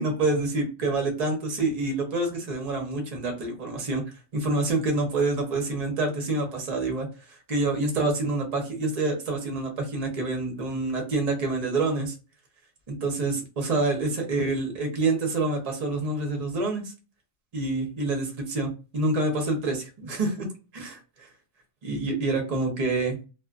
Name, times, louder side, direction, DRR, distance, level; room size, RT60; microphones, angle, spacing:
voice 1, 0.0-12.1 12.9-16.9 17.5-20.5 20.7-21.3 21.8-23.2, right 2 dB, 40° right, 2 dB, 0.7 m, -27 dB
2.5 x 2.4 x 2.3 m, 0.32 s
omnidirectional pair, 1.5 m